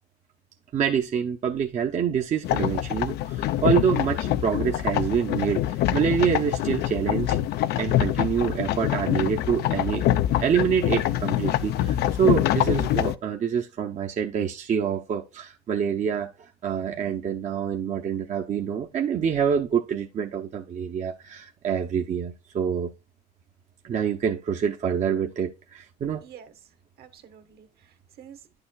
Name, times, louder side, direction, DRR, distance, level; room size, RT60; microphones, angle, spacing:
voice 1, 0.7-7.4 7.8-10.1 10.4-22.9 23.8-26.2, right 7 dB, 45° right, 0.8 m, -26 dB
sound 1, 2.4-13.1, left 12 dB, 75° left, 0.6 m, -25 dB
voice 2, 26.2-26.5 27.0-28.6, right 8 dB, 70° right, 1.5 m, -49 dB
10.5 x 6.8 x 2.4 m
cardioid pair, 110°, 17 cm